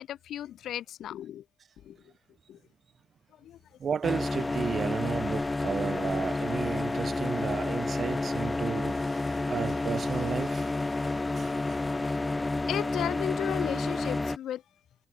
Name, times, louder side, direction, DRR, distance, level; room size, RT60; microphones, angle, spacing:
voice 1, 0.0-1.4 1.8-2.1 2.5-2.6 3.4-3.6 10.9-12.2 12.7-14.6, left 11 dB, 90° left, 5.5 m, -36 dB
voice 2, 3.8-10.8 11.4-11.8, right 7 dB, 55° right, 2.7 m, -33 dB
sound 1, 4.0-14.4, left 2 dB, 20° left, 1.1 m, -30 dB
cardioid pair, 105°, 0 cm